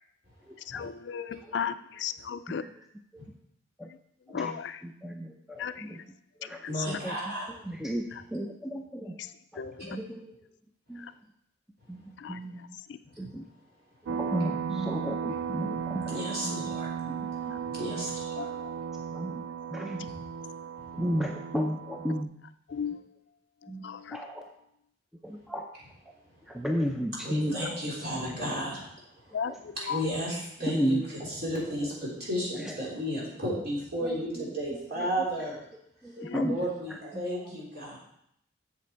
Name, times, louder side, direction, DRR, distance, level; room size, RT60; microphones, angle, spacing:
voice 1, 0.7-2.6 3.9-4.0 4.3-4.8 5.6-6.0 6.4-6.5 6.8-6.9 8.1-8.2 9.2-10.0 11.0-11.1 12.2-12.4 12.9-13.0 17.5-17.6 18.4-18.7 22.7-23.0 23.6-24.2 27.6-27.7 29.3-30.0 36.2-36.5, left 7 dB, 60° left, 12 dB, 0.4 m, -36 dB
voice 2, 4.3-6.0 6.4-6.6 6.9-7.2 7.6-9.2 9.9-10.3 10.9-11.0 11.9-12.0 12.3-12.7 13.2-13.4 14.1-16.2 16.4-16.6 17.1-17.2 19.1-19.4 19.7-20.0 21.0-22.3 23.7-23.8 24.1-24.5 25.2-25.6 26.5-27.9 29.5-29.6 30.7-31.0 32.5-32.8 34.0-34.4 34.9-35.3 36.0-37.0, equal, ahead, 2 dB, 0.5 m, -33 dB
voice 3, 6.7-7.5 13.2-13.3 15.7-16.9 17.7-18.5 20.9-21.1 27.2-28.8 29.2-29.4 29.8-35.6 36.4-38.0, equal, 50° right, -6 dB, 3.7 m, -33 dB
sound 1, 14.0-22.2, right 7 dB, 90° right, 0.3 m, -35 dB
7.6 x 7.0 x 4.6 m, 0.75 s
head